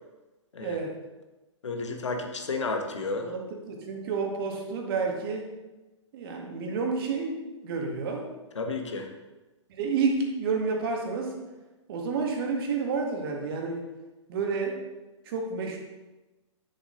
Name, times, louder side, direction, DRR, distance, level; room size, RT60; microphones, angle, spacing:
voice 1, 0.6-1.0 3.2-5.5 6.1-8.3 9.7-11.4 11.9-13.9 14.3-14.8 15.3-15.8, right 4 dB, 50° right, 1 dB, 2.0 m, -30 dB
voice 2, 1.6-3.3 8.5-9.1, left 3 dB, 70° left, 4 dB, 1.5 m, -32 dB
10.5 x 6.9 x 3.9 m, 1.1 s
figure-of-eight pair, 110°, 16 cm